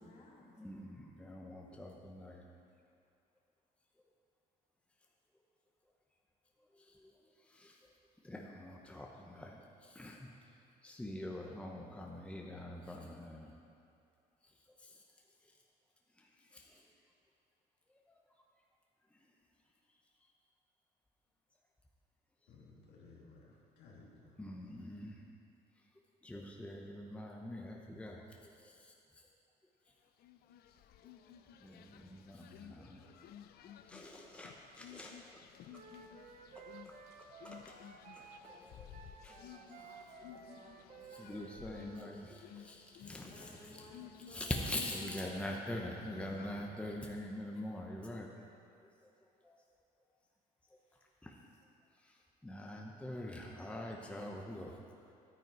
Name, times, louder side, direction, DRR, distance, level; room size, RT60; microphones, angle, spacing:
voice 1, 0.0-0.7 2.6-2.7 38.2-38.8 39.2-41.6 43.3-45.4 47.5-47.7 50.8-51.3, left 2 dB, 40° left, -3 dB, 2.3 m, -60 dB
voice 2, 0.6-2.5 6.7-10.6 10.8-13.5 14.4-14.5 14.8-15.0 15.4-15.5 16.2-16.9 17.9-18.1 19.1-19.3 24.4-25.2 26.2-29.3 31.0-31.1 31.6-33.2 33.6-35.4 36.5-37.7 38.2-38.9 39.2-39.4 41.1-43.9 44.3-48.3 48.8-48.9 49.4-49.6 51.2-51.5 52.0-54.8 55.0-55.1, left 1 dB, 5° left, -1 dB, 0.9 m, -45 dB
voice 3, 22.5-24.5 43.2-43.8 45.9-46.7, left 3 dB, 80° left, -4 dB, 2.5 m, -56 dB
sound 1, 30.2-46.7, left 10 dB, 65° left, 0.5 m, -56 dB
Wind instrument woodwind instrument, 35.7-42.1, right 4 dB, 50° right, 0.9 m, -55 dB
11.0 x 9.3 x 4.7 m, 2.4 s
cardioid pair, 110°, 17 cm